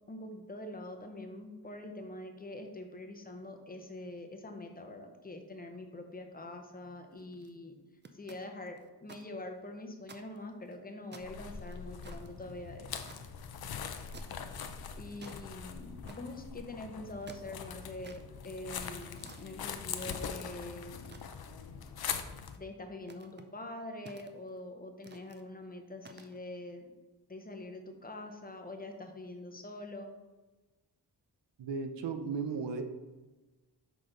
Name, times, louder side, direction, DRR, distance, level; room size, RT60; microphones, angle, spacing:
voice 1, 0.1-7.8 8.1-13.1 15.0-21.1 22.6-26.9 27.3-30.2, left 2 dB, 20° left, 5 dB, 0.6 m, -44 dB
sound 1, 7.1-7.5 8.0-9.2 9.6-9.7 10.0-10.8 11.1-13.2 14.1-14.5 14.9-15.4 16.1-16.4 17.0-18.2 19.0-19.4 20.0-20.6 21.0-21.6 22.1-22.5 23.0-23.5 24.1-24.6 25.0-25.4 26.0-26.4, right 4 dB, 25° right, 0.4 m, -54 dB
sound 2, 11.2-22.6, left 7 dB, 60° left, 0.5 m, -42 dB
voice 2, 31.6-32.8, right 5 dB, 85° right, 7 dB, 0.7 m, -35 dB
6.2 x 5.1 x 3.8 m, 1.2 s
wide cardioid pair, 165°, 42 cm